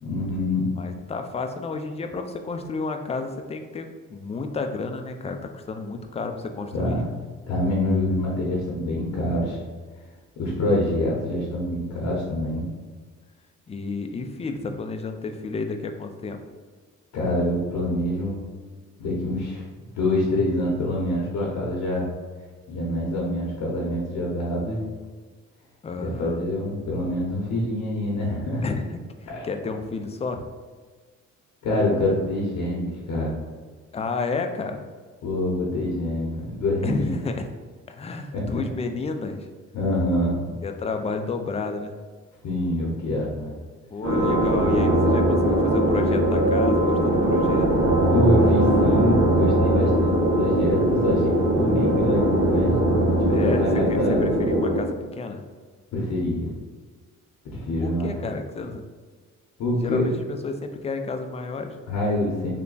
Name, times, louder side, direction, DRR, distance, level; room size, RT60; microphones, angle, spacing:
voice 1, 0.0-0.7 6.7-7.0 7.5-9.6 10.4-12.7 17.1-18.4 19.0-19.6 19.9-22.1 22.7-24.8 26.0-28.6 29.3-29.5 31.6-33.4 35.2-37.1 38.3-38.6 39.7-40.4 42.4-43.5 48.1-54.2 55.9-56.5 57.4-58.1 59.6-60.1 61.9-62.6, left 1 dB, 75° left, -3 dB, 0.9 m, -25 dB
voice 2, 0.8-7.0 13.7-16.4 25.8-26.4 28.6-29.0 29.4-30.4 33.9-34.9 36.8-37.5 37.9-39.5 40.6-42.0 43.9-47.7 53.3-55.4 57.8-58.8 59.8-61.8, left 4 dB, 20° left, 6 dB, 0.4 m, -31 dB
sound 1, 44.0-54.8, right 1 dB, 70° right, 1.1 m, -20 dB
3.4 x 2.2 x 3.8 m, 1.5 s
cardioid pair, 90°, 30 cm